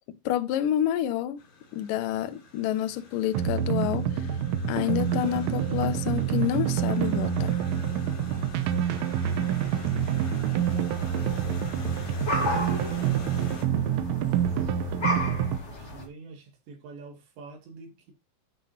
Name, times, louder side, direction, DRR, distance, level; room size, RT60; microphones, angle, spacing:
voice 1, 0.1-1.4 1.7-4.3 4.7-7.6, left 11 dB, 85° left, 1.9 m, -28 dB
sound 1, 1.4-13.6, left 3 dB, 50° left, 4.3 m, -45 dB
sound 2, 3.3-15.6, right 9 dB, 90° right, 3.5 m, -27 dB
sound 3, 11.0-16.1, left 1 dB, 20° left, 1.9 m, -34 dB
voice 2, 12.6-13.2 15.7-18.1, right 4 dB, 65° right, 4.5 m, -47 dB
12.5 x 8.1 x 2.7 m
omnidirectional pair, 5.5 m